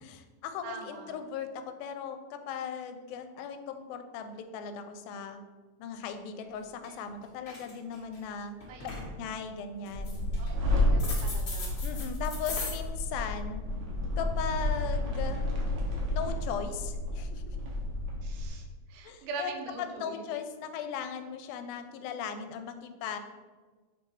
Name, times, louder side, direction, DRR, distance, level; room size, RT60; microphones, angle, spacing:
voice 1, 0.0-1.5 1.8-5.4 5.8-8.6 9.2-10.2 11.8-13.6 14.2-15.4 16.1-17.6 19.0-23.2, left 7 dB, 85° left, 8 dB, 2.3 m, -38 dB
voice 2, 0.6-1.2 8.7-9.0 10.4-11.8 18.2-20.2, right 4 dB, 85° right, 3 dB, 2.7 m, -42 dB
sound 1, 6.8-7.1 7.4-8.2 8.6-9.1 9.9-10.5 11.0-12.7, left 4 dB, 55° left, 1.3 m, -39 dB
sound 2, 9.9-18.5, left 1 dB, 70° right, 1.4 m, -31 dB
7.3 x 3.2 x 4.4 m, 1.4 s
omnidirectional pair, 4.2 m